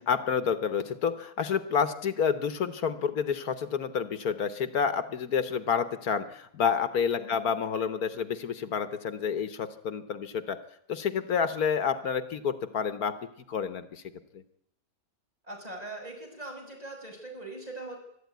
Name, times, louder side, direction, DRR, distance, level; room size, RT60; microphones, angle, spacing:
voice 1, 0.1-10.6 10.9-13.2 13.5-14.0 14.3-14.4, left 7 dB, 75° left, 11 dB, 1.6 m, -29 dB
voice 2, 7.2-7.5 15.4-18.0, right 2 dB, 25° right, 1 dB, 6.5 m, -41 dB
23.5 x 12.5 x 9.4 m, 0.74 s
omnidirectional pair, 1.6 m